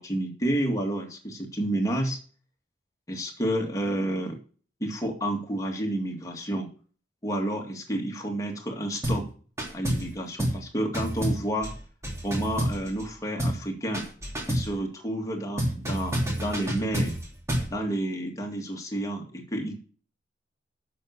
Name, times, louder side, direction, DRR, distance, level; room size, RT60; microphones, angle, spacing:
voice 1, 0.0-2.2 3.1-4.4 4.8-6.7 7.2-9.3 9.7-11.7 12.2-14.1 14.5-17.1 17.7-19.8, right 1 dB, 20° left, 1 dB, 2.2 m, -30 dB
sound 1, 9.0-9.3 9.6-10.1 10.4-10.7 10.9-13.1 13.4-13.7 13.9-14.7 15.6-17.7, equal, 15° right, 2.8 m, -29 dB
8.3 x 6.6 x 6.6 m, 0.41 s
head